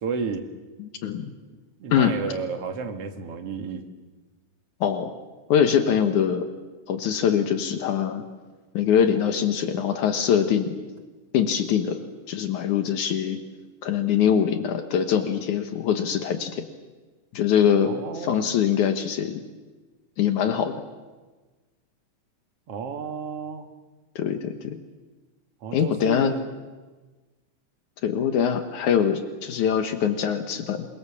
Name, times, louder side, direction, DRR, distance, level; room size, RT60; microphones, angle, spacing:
voice 1, 0.0-0.4 1.8-3.8 17.9-18.5 22.7-23.7 25.6-26.4, right 5 dB, 50° right, 5 dB, 2.7 m, -32 dB
voice 2, 0.8-1.3 1.9-2.1 4.8-5.1 5.5-6.5 6.9-8.2 8.7-10.8 11.3-12.0 12.3-13.4 13.8-16.7 17.3-19.4 20.2-20.7 24.2-24.8 25.7-26.3 28.0-30.9, left 8 dB, 75° left, 7 dB, 2.7 m, -23 dB
27.5 x 23.5 x 7.2 m, 1.3 s
omnidirectional pair, 3.6 m